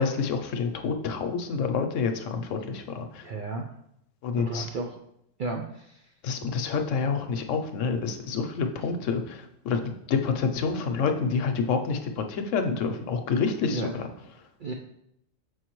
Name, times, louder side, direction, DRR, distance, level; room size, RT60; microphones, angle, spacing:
voice 1, 0.0-3.3 4.2-4.7 6.2-14.1, left 5 dB, 75° left, 6 dB, 1.0 m, -28 dB
voice 2, 3.2-3.6 4.4-5.0 5.4-5.9 13.7-13.9 14.6-14.7, right 2 dB, 60° right, 2 dB, 0.5 m, -33 dB
6.3 x 4.9 x 3.0 m, 0.77 s
omnidirectional pair, 1.4 m